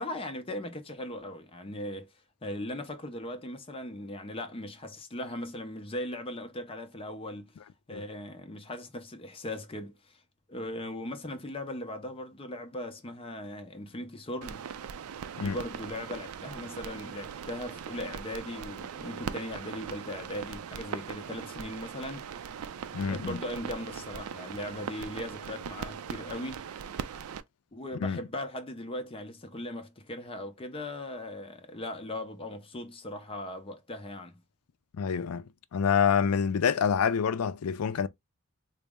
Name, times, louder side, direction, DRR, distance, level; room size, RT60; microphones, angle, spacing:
voice 1, 0.0-2.1 2.4-7.5 7.9-10.2 10.5-14.7 15.4-22.3 23.1-26.7 27.7-34.4, left 1 dB, 25° left, 0.6 m, -38 dB
sound 1, 14.4-27.4, right 7 dB, 80° right, 0.4 m, -40 dB
voice 2, 22.9-23.4 28.0-28.2 35.0-35.4 35.7-38.1, left 7 dB, 85° left, 0.4 m, -27 dB
4.0 x 2.0 x 3.5 m
head